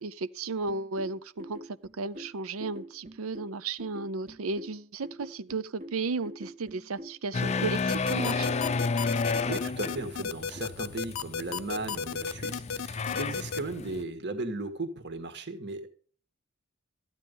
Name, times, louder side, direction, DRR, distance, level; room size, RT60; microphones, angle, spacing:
voice 1, 0.0-8.5, right 3 dB, 85° right, 0.6 m, -34 dB
sound 1, 0.7-10.6, right 1 dB, 40° right, 1.4 m, -46 dB
sound 2, 7.3-14.0, left 4 dB, 30° left, 0.5 m, -32 dB
sound 3, 7.9-13.6, left 6 dB, 90° left, 0.7 m, -33 dB
voice 2, 9.5-15.9, right 2 dB, 55° right, 1.7 m, -36 dB
13.5 x 9.7 x 5.3 m
head